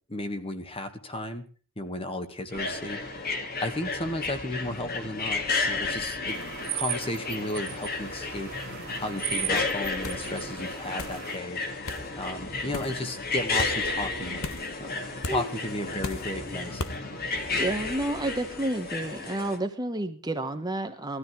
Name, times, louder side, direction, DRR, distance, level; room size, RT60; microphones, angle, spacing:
voice 1, 0.1-1.4 1.8-3.2 3.6-6.4 6.7-8.5 9.0-11.6 12.2-17.0, left 1 dB, 25° left, 7 dB, 1.7 m, -34 dB
sound 1, 2.5-19.6, left 3 dB, 45° left, 2.3 m, -32 dB
sound 2, 6.3-11.4, right 11 dB, 45° right, 2.0 m, -37 dB
sound 3, 10.0-10.3 11.0-11.2 11.9-12.1 12.7-13.0 13.6-13.7 14.4-14.7 15.2-15.4 16.0-16.3 16.8-17.0, left 2 dB, 65° left, 1.2 m, -35 dB
voice 2, 17.6-21.2, right 1 dB, 20° right, 6 dB, 1.1 m, -30 dB
18.5 x 13.0 x 4.6 m, 0.38 s
head